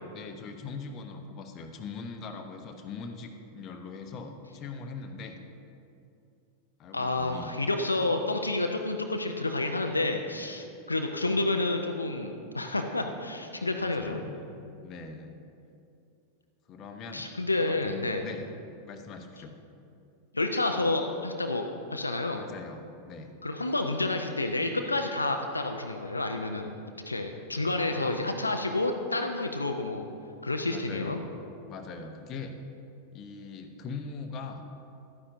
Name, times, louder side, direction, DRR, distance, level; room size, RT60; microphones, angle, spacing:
voice 1, 0.1-5.4 6.8-7.6 13.7-14.4 14.8-15.3 16.7-17.3 17.6-18.5 18.9-19.6 22.3-23.3 27.9-28.3 30.6-31.3 31.7-32.5 33.1-34.6, left 4 dB, 35° left, 5 dB, 0.8 m, -41 dB
voice 2, 6.9-14.2 17.1-18.2 20.3-21.7 21.9-22.4 23.4-30.1 30.4-31.2, left 2 dB, 80° left, 5 dB, 0.5 m, -29 dB
12.5 x 9.7 x 2.6 m, 2.6 s
figure-of-eight pair, 90°, 0 cm